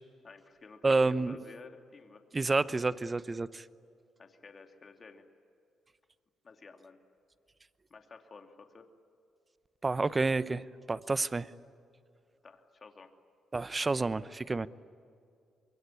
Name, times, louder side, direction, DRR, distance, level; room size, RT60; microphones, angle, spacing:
voice 1, 0.2-2.2 4.2-5.2 6.4-7.0 7.9-8.9 12.4-13.1, left 4 dB, 40° left, 5 dB, 2.8 m, -53 dB
voice 2, 0.8-1.4 2.3-3.6 9.8-11.5 13.5-14.7, right 3 dB, 25° right, 16 dB, 0.8 m, -29 dB
25.5 x 22.5 x 9.8 m, 2.4 s
cardioid pair, 90°, 0 cm